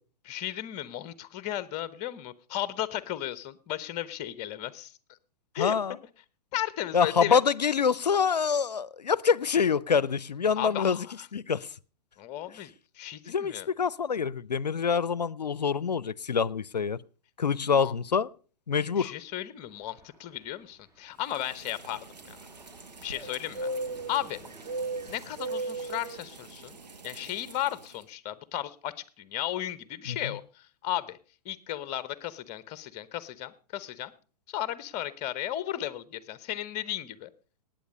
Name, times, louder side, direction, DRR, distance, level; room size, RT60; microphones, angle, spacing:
voice 1, 0.3-4.9 5.5-6.0 6.5-7.4 10.6-11.3 12.2-13.7 17.7-17.9 19.0-22.4 23.0-23.7 24.1-24.4 25.1-26.8 27.0-31.2 31.4-34.1 34.5-37.3, left 12 dB, 30° left, 1.0 m, -35 dB
voice 2, 5.6-6.0 6.9-11.0 11.3-11.7 13.3-17.0 17.4-18.3 18.7-19.1 30.1-30.2, left 6 dB, 80° left, 0.6 m, -26 dB
Fixed-wing aircraft airplane, 19.6-27.2, right 1 dB, 15° right, 2.8 m, -56 dB
sound 1, 21.3-27.9, right 2 dB, 85° right, 1.2 m, -38 dB
19.0 x 9.1 x 5.3 m
figure-of-eight pair, 110°, 21 cm